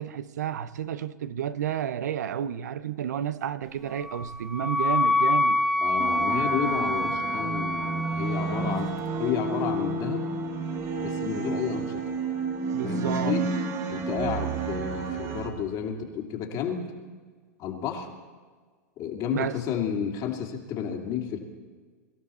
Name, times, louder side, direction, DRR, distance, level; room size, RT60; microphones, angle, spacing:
voice 1, 0.0-5.6 12.7-13.4 19.3-19.6, right 9 dB, 80° right, 0.7 m, -31 dB
Wind instrument woodwind instrument, 4.0-8.8, left 2 dB, ahead, 0.9 m, -26 dB
voice 2, 5.8-8.9 9.2-10.3 11.0-12.0 12.8-13.5 13.9-16.8 17.6-18.1 19.0-21.4, left 8 dB, 45° left, 2.6 m, -31 dB
sound 1, 6.0-15.5, right 4 dB, 35° right, 1.9 m, -31 dB
24.5 x 13.0 x 4.2 m
hypercardioid pair, 110°, 9 cm